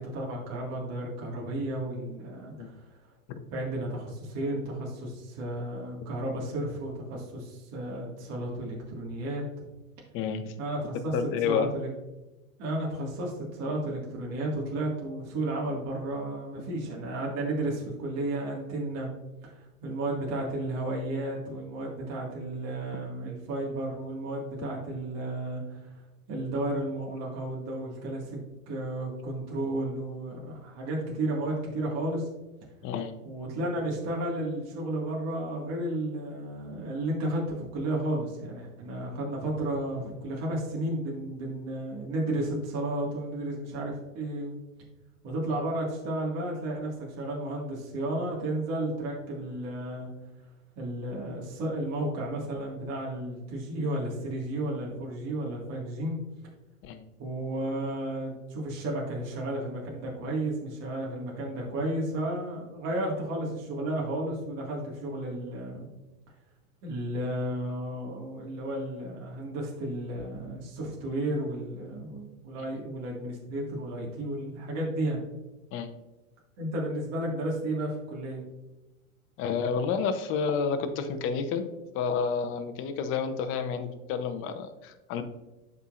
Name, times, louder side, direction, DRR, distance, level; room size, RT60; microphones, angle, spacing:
voice 1, 0.0-2.7 3.5-9.4 10.6-11.2 11.5-11.9 12.6-19.1 19.4-25.9 26.3-28.4 28.7-32.3 33.2-44.6 45.2-50.1 50.8-56.2 57.2-65.9 66.8-75.2 76.6-78.4, right 1 dB, 40° right, -2 dB, 1.9 m, -33 dB
voice 2, 10.1-10.5 11.1-11.7 32.8-33.1 56.8-57.0 75.7-75.9 79.4-81.7 81.9-85.2, left 6 dB, 30° left, 7 dB, 0.7 m, -30 dB
11.5 x 4.4 x 2.4 m, 1.1 s
hypercardioid pair, 125°, 43 cm